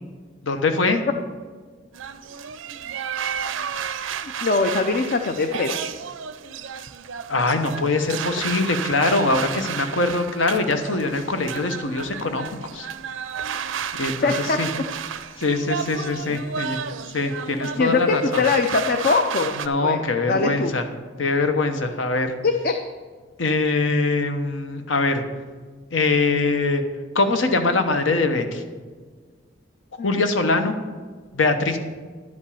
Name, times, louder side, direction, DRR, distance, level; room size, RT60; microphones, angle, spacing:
voice 1, 0.4-1.0 7.3-12.5 12.7-12.9 14.0-14.3 14.6-14.7 15.4-16.8 17.1-18.4 19.6-20.9 21.2-22.3 23.4-25.2 25.9-26.8 27.1-28.6 30.0-30.7 31.3-31.8, left 3 dB, 75° left, 7 dB, 0.9 m, -22 dB
sound 1, 1.9-19.7, right 7 dB, 85° right, 0.5 m, -32 dB
voice 2, 4.4-5.8 14.2-14.8 17.5-19.6 19.8-20.0 20.3-20.7 22.4-22.7 30.0-30.2, left 4 dB, 50° left, 5 dB, 0.5 m, -22 dB
11.0 x 5.3 x 7.0 m, 1.5 s
head